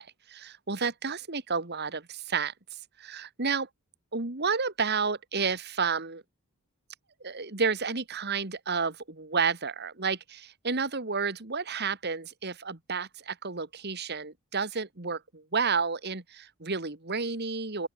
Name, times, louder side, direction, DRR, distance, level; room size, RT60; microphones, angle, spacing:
voice 1, 0.0-3.7 4.1-6.2 7.2-17.9, right 5 dB, 50° right, 2.1 m, -31 dB
open air
head